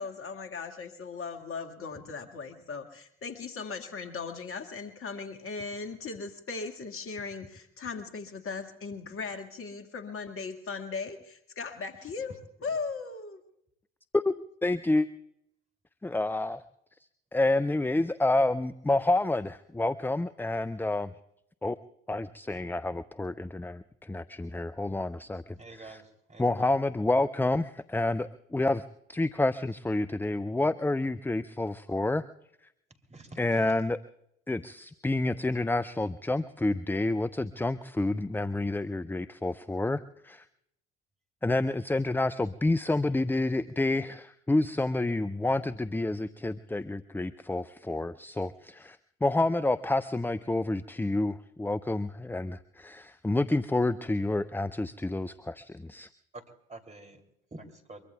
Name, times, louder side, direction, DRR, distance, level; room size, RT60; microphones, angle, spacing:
voice 1, 0.0-13.4, left 4 dB, 45° left, 6 dB, 1.9 m, -38 dB
voice 2, 14.1-15.1 16.0-16.6 17.3-21.1 21.6-21.8 22.1-26.0 26.4-28.8 29.1-32.2 33.4-34.0 34.5-40.4 41.4-56.1, left 2 dB, 5° left, 13 dB, 0.5 m, -29 dB
voice 3, 25.6-26.7 33.1-33.7 56.3-56.4 56.7-57.2 57.5-58.0, right 2 dB, 25° right, 5 dB, 3.2 m, -47 dB
23.5 x 23.0 x 2.4 m, 0.77 s
hypercardioid pair, 50°, 30 cm